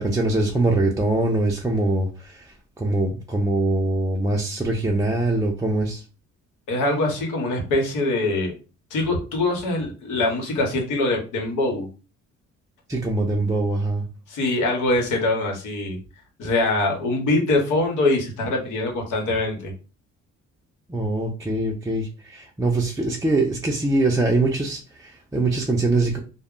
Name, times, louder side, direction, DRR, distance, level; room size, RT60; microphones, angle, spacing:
voice 1, 0.0-6.0 12.9-14.0 20.9-26.2, right 2 dB, 10° right, -1 dB, 0.4 m, -23 dB
voice 2, 6.7-8.5 8.9-11.9 14.3-16.0 16.4-19.7, left 2 dB, 80° left, 2 dB, 1.0 m, -23 dB
2.2 x 2.0 x 3.6 m, 0.34 s
cardioid pair, 90°, 30 cm